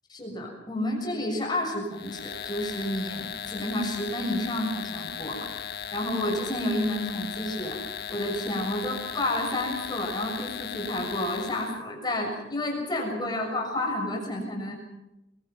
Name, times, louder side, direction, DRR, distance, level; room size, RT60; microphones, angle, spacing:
voice 1, 0.1-5.5 5.9-7.8 8.1-14.7, left 1 dB, 25° left, 0 dB, 6.7 m, -30 dB
sound 1, 1.9-11.8, left 8 dB, 60° left, 1.3 m, -37 dB
28.0 x 22.5 x 6.0 m, 0.91 s
head